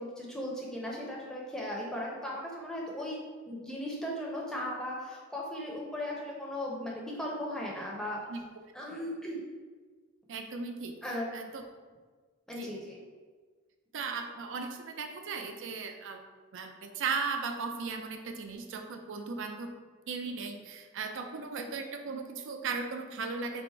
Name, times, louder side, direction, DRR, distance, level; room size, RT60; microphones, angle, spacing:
voice 1, 0.0-3.2 3.5-8.2 8.7-9.4 11.0-11.3 12.5-13.0, left 1 dB, 5° left, -3 dB, 0.6 m, -37 dB
voice 2, 10.3-10.9 11.3-11.6 12.5-12.7 13.9-16.3 16.5-19.7 20.1-23.6, right 4 dB, 60° right, 5 dB, 0.4 m, -37 dB
3.4 x 2.5 x 4.4 m, 1.4 s
head